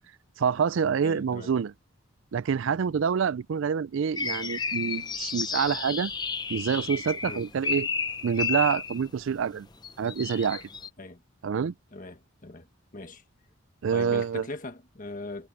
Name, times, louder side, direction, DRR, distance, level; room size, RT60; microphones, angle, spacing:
voice 1, 0.4-1.7 2.3-6.1 6.5-7.9 8.2-9.7 10.0-10.6 11.4-11.7 13.8-14.5, right 6 dB, 65° right, 0.4 m, -27 dB
voice 2, 1.0-1.5 7.3-7.4 11.0-11.2 11.9-12.7 12.9-13.2 13.9-15.5, left 2 dB, 40° left, 1.6 m, -40 dB
sound 1, 4.2-9.0 9.8-10.9, left 5 dB, 20° left, 0.7 m, -32 dB
head